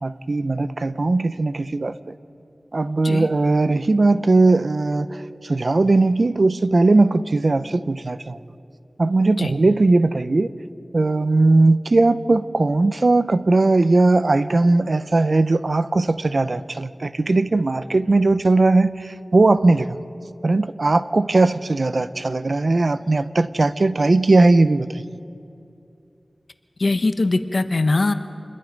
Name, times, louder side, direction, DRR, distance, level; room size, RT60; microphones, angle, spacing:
voice 1, 0.0-2.0 2.7-5.2 5.4-8.4 9.0-10.5 10.9-20.0 20.4-24.9, right 2 dB, 65° right, 13 dB, 0.7 m, -18 dB
voice 2, 26.8-28.1, left 2 dB, 75° left, 9 dB, 1.1 m, -21 dB
28.0 x 22.0 x 5.3 m, 2.6 s
wide cardioid pair, 50°, 0 cm